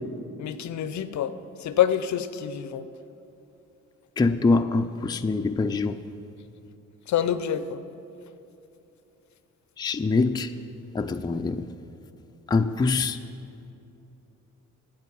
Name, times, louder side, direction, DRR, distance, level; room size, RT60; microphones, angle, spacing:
voice 1, 0.4-1.3 1.6-2.9 7.1-7.8, left 10 dB, 60° left, 0.6 m, -26 dB
voice 2, 4.2-6.0 9.8-10.5 10.9-11.7 12.5-13.2, left 3 dB, 15° left, 0.4 m, -24 dB
9.1 x 7.7 x 7.1 m
supercardioid pair, 55°, 33 cm